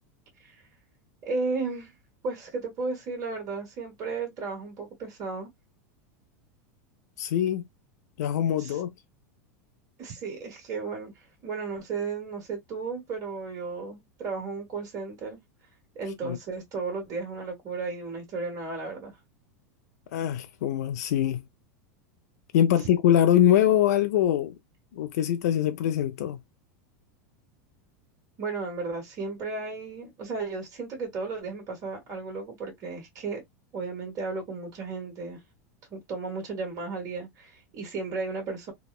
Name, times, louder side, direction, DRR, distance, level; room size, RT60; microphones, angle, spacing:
voice 1, 1.2-1.9 2.2-5.5 8.6-8.8 10.0-15.4 15.9-19.1 22.8-22.9 28.4-33.4 33.7-35.4 35.9-38.7, right 4 dB, 45° right, 1.4 m, -34 dB
voice 2, 7.2-7.6 8.2-8.9 16.2-16.4 20.1-21.4 22.5-24.5 24.9-26.4, left 10 dB, 75° left, 0.3 m, -23 dB
2.8 x 2.1 x 2.3 m
hypercardioid pair, 110°, 9 cm